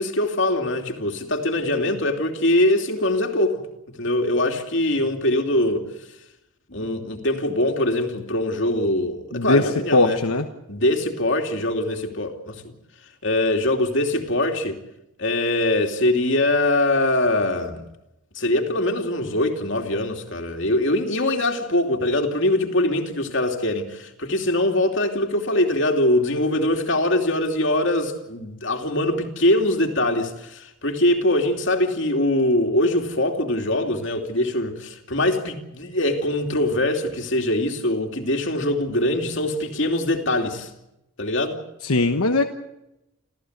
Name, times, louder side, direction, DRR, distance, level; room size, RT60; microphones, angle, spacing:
voice 1, 0.0-3.6 3.9-5.9 6.7-10.2 10.7-12.7 13.2-14.8 15.2-17.8 18.3-40.7 41.2-41.6, left 1 dB, 55° left, 2.8 m, -22 dB
voice 2, 9.3-10.4 41.8-42.4, left 2 dB, 85° left, 1.3 m, -20 dB
29.0 x 14.5 x 8.1 m
head